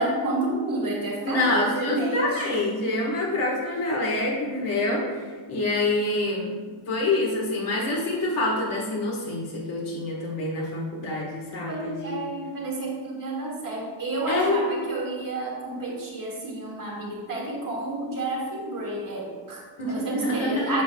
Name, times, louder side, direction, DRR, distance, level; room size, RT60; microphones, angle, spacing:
voice 1, 0.0-2.2 11.7-19.6 19.9-20.8, right 2 dB, 40° right, -3 dB, 1.9 m, -30 dB
voice 2, 1.2-6.5 6.9-12.1 14.3-14.8 19.8-20.8, left 2 dB, 80° left, -4 dB, 1.5 m, -26 dB
10.5 x 6.9 x 2.2 m, 1.5 s
wide cardioid pair, 175°, 50 cm